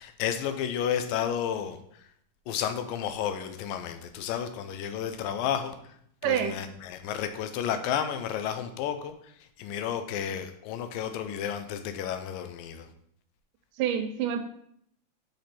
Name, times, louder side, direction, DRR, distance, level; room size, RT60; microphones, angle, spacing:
voice 1, 0.0-1.8 2.5-5.8 6.2-9.1 9.6-12.9, left 9 dB, 85° left, 8 dB, 2.4 m, -32 dB
voice 2, 6.2-6.6 13.8-14.4, right 9 dB, 80° right, 6 dB, 2.2 m, -27 dB
6.2 x 6.0 x 4.2 m, 0.69 s
omnidirectional pair, 3.9 m